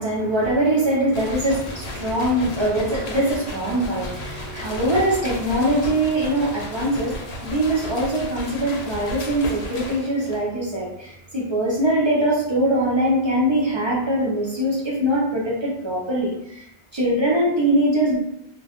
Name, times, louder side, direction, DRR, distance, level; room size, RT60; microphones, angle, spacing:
voice 1, 0.0-16.7 16.9-18.2, right 1 dB, 40° right, -5 dB, 0.4 m, -22 dB
sound 1, 1.1-10.5, left 2 dB, 80° left, 0.9 m, -34 dB
2.2 x 2.1 x 2.8 m, 0.77 s
omnidirectional pair, 1.1 m